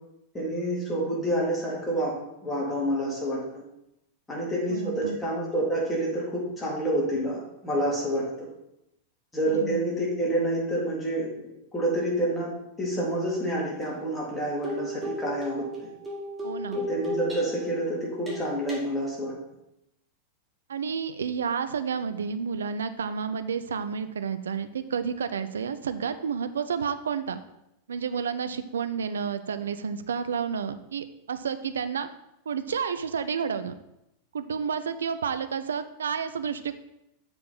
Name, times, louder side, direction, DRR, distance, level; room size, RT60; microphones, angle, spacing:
voice 1, 0.3-2.1 2.4-3.4 4.3-8.5 9.3-11.3 11.7-12.5 12.8-15.7 16.7-19.3, right 1 dB, 10° left, -5 dB, 2.5 m, -28 dB
voice 2, 4.7-5.2 9.5-9.8 16.4-16.8 20.7-27.4 27.9-32.1 32.5-33.7 34.3-36.8, right 6 dB, 65° right, 10 dB, 0.4 m, -30 dB
sound 1, 13.8-13.9 14.6-17.7 18.3-18.8, left 1 dB, 10° right, 1.7 m, -35 dB
7.3 x 4.4 x 4.0 m, 0.84 s
figure-of-eight pair, 90°, 0 cm